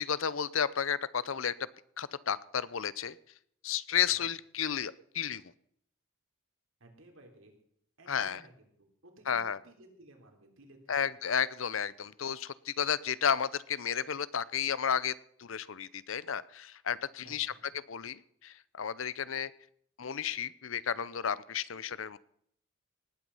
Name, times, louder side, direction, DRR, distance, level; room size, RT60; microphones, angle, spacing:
voice 1, 0.0-1.5 2.0-3.1 3.6-5.4 8.1-8.4 9.3-9.6 10.9-15.1 15.4-17.5 17.9-19.5 20.0-22.2, left 8 dB, 70° left, 19 dB, 0.7 m, -32 dB
voice 2, 6.8-7.6 8.0-11.1 17.2-17.7, right 1 dB, 70° right, 3 dB, 3.7 m, -57 dB
19.0 x 9.3 x 5.6 m, 0.68 s
head